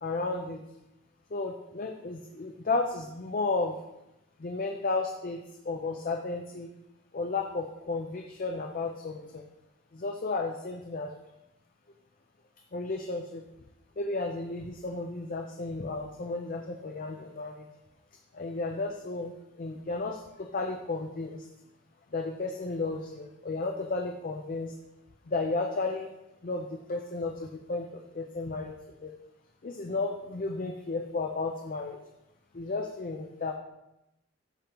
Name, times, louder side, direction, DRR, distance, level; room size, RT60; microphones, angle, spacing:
voice 1, 0.0-0.6 1.3-3.8 4.4-6.7 7.1-9.4 9.9-11.1 12.7-13.4 14.0-17.7 18.3-21.5 22.1-24.7 25.3-26.1 26.4-28.7 29.0-29.1 29.6-32.0 32.5-33.5, left 3 dB, 45° left, 3 dB, 0.6 m, -33 dB
14.0 x 5.1 x 3.0 m, 0.89 s
head